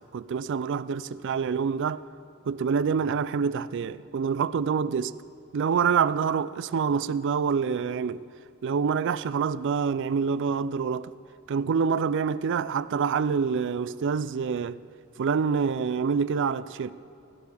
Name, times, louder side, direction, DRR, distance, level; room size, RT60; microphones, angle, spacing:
voice 1, 0.1-2.0 2.5-5.2 5.5-8.2 8.6-11.1 11.5-14.8 15.2-16.9, right 6 dB, 60° right, 0.4 m, -26 dB
18.0 x 16.5 x 3.5 m
head